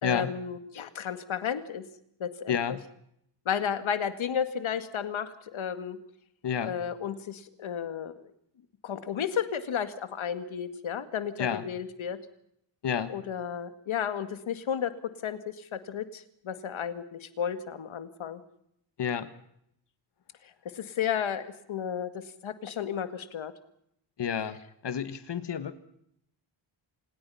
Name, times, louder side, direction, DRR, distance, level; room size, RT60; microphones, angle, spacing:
voice 1, 0.0-1.9 2.2-2.8 3.5-6.0 6.7-8.3 8.8-12.2 13.1-18.4 20.7-23.5, left 8 dB, 70° left, 11 dB, 2.0 m, -33 dB
voice 2, 2.5-2.8 6.4-6.7 11.4-11.6 12.8-13.1 19.0-19.3 24.2-24.6 24.8-25.8, left 8 dB, 55° left, 12 dB, 1.5 m, -30 dB
27.5 x 20.0 x 5.6 m, 0.74 s
wide cardioid pair, 175°, 49 cm